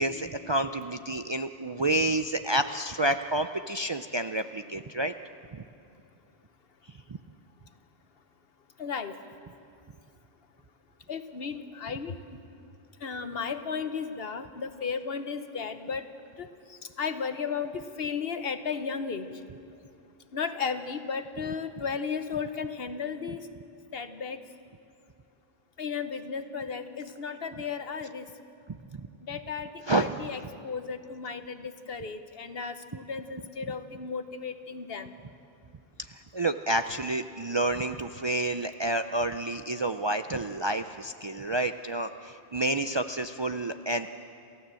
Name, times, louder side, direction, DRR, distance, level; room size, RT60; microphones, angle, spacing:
voice 1, 0.0-5.1 5.5-5.6 28.9-29.0 29.9-30.1 36.3-44.1, right 1 dB, 40° right, 8 dB, 0.4 m, -29 dB
voice 2, 8.8-9.1 11.1-12.2 13.0-16.1 16.4-19.3 20.3-23.4 23.9-24.4 25.8-28.3 29.3-35.1, left 5 dB, 70° left, 10 dB, 1.3 m, -34 dB
28.5 x 15.5 x 7.6 m, 2.5 s
omnidirectional pair, 1.1 m